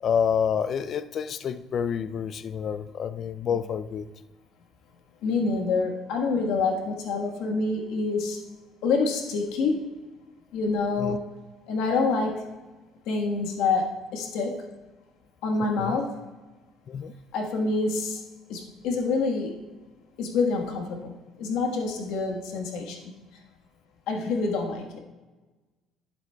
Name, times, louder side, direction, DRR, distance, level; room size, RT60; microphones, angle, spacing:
voice 1, 0.0-4.0 11.0-11.2 15.8-16.0 16.9-17.1, left 7 dB, 45° left, 13 dB, 0.4 m, -28 dB
voice 2, 5.2-8.4 8.8-9.8 10.5-11.2 11.7-12.4 13.1-14.6 15.4-16.1 17.3-18.2 18.5-19.6 20.2-23.0 24.1-25.0, left 4 dB, 80° left, 2 dB, 1.4 m, -27 dB
10.5 x 7.7 x 2.3 m, 1.2 s
cardioid pair, 130°, 0 cm